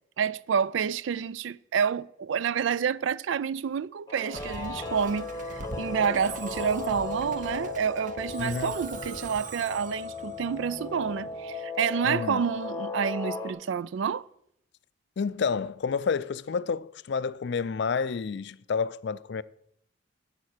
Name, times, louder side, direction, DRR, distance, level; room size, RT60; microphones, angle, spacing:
voice 1, 0.2-14.2, right 7 dB, 70° right, 0.3 m, -29 dB
Guitar, 4.1-13.5, left 4 dB, 20° left, 1.0 m, -36 dB
Musical instrument, 4.3-11.7, right 3 dB, 40° right, 0.8 m, -43 dB
voice 2, 8.4-8.7 12.0-12.4 15.2-19.4, left 5 dB, 60° left, 0.4 m, -29 dB
8.6 x 8.2 x 6.5 m
head